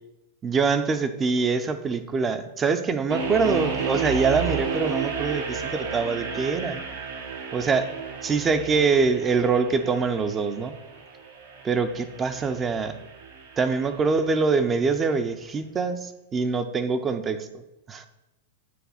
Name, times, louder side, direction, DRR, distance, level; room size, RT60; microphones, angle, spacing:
voice 1, 0.4-6.8 7.5-7.9 8.2-10.7 11.6-13.0 13.6-17.5 17.9-18.1, right 4 dB, 20° right, 10 dB, 0.5 m, -24 dB
sound 1, 3.1-14.1, right 5 dB, 80° right, 1.4 m, -33 dB
8.5 x 3.4 x 5.6 m, 0.95 s
hypercardioid pair, 130°, 0 cm